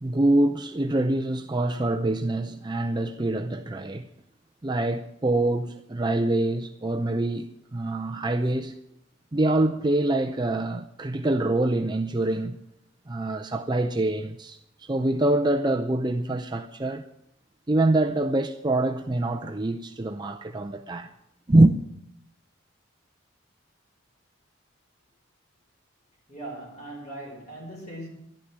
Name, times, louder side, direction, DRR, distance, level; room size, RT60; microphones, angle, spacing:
voice 1, 0.0-4.1 4.6-8.8 9.3-12.6 13.1-17.0 17.7-21.1 21.5-21.7, right 2 dB, 20° right, 0.5 m, -25 dB
voice 2, 26.3-28.1, right 1 dB, 35° left, 5.2 m, -39 dB
12.0 x 11.0 x 7.4 m
head